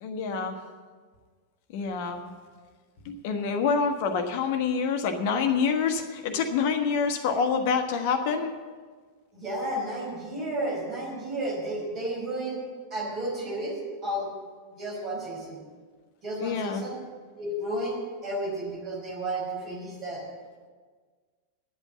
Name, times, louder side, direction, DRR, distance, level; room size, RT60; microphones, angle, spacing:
voice 1, 0.0-0.6 1.7-2.3 3.0-8.5 16.4-16.8, left 5 dB, 50° left, 6 dB, 1.3 m, -27 dB
voice 2, 9.3-12.6 12.9-13.8 14.0-14.3 14.8-15.6 16.2-17.0 17.4-20.2, right 1 dB, 30° right, -2 dB, 4.7 m, -32 dB
10.0 x 8.2 x 8.5 m, 1.5 s
figure-of-eight pair, 90°, 0 cm